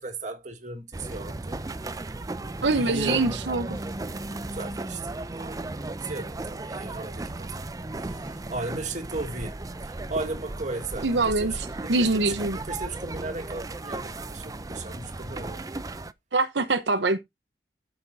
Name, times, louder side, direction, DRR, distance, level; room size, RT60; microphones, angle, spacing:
voice 1, 0.0-1.6 2.7-3.4 4.5-7.7 8.0-15.6, right 2 dB, 45° right, 1.8 m, -36 dB
sound 1, 0.9-16.1, right 2 dB, 20° right, 0.5 m, -35 dB
voice 2, 2.6-3.8 11.0-12.6 16.3-17.2, right 3 dB, 85° right, 1.0 m, -24 dB
13.0 x 5.9 x 2.7 m
head